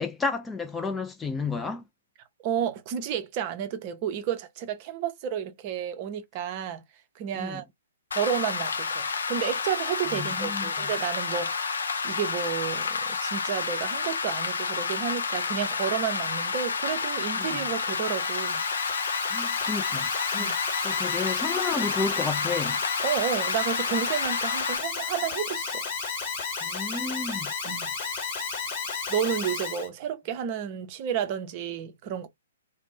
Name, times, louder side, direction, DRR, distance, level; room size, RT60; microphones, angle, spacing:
voice 1, 0.0-1.8 7.3-7.6 10.1-10.9 17.4-17.7 19.3-20.5 20.8-22.8 26.6-27.5, left 4 dB, 10° left, 0.3 m, -32 dB
voice 2, 2.4-6.8 7.2-7.6 8.1-11.7 12.0-18.6 20.4-20.6 23.0-25.8 27.6-27.9 29.1-32.3, right 9 dB, 35° right, 0.6 m, -31 dB
Rain, 8.1-24.8, left 5 dB, 65° left, 0.5 m, -30 dB
Alarm, 17.5-29.9, left 5 dB, 40° left, 1.2 m, -33 dB
2.5 x 2.0 x 3.4 m
figure-of-eight pair, 120°, 0 cm